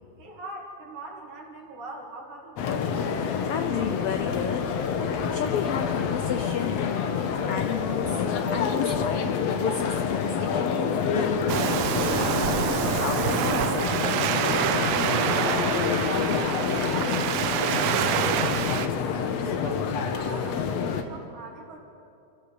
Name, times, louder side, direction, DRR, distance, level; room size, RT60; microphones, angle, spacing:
voice 1, 0.2-2.9 16.1-19.1 19.5-21.8, right 2 dB, 70° right, -2 dB, 3.6 m, -42 dB
sound 1, 2.6-21.0, left 6 dB, 65° left, 2.1 m, -27 dB
voice 2, 3.2-5.0 5.3-10.8 11.2-11.3 12.9-14.9 15.7-15.8, left 8 dB, 85° left, 7 dB, 1.2 m, -33 dB
Waves surf, 11.5-18.9, right 10 dB, 90° right, 2.3 m, -27 dB
26.5 x 15.5 x 7.0 m, 2.8 s
omnidirectional pair, 3.5 m